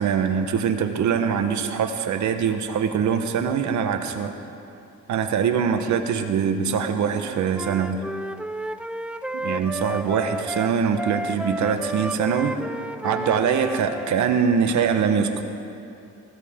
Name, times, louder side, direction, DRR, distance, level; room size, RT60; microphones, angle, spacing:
voice 1, 0.0-4.3 5.1-8.0 9.3-12.6 13.0-15.4, right 7 dB, 70° right, 7 dB, 1.3 m, -23 dB
Wind instrument woodwind instrument, 7.5-14.4, right 1 dB, 5° right, 0.3 m, -32 dB
20.0 x 16.0 x 3.7 m, 2.7 s
cardioid pair, 90°, 30 cm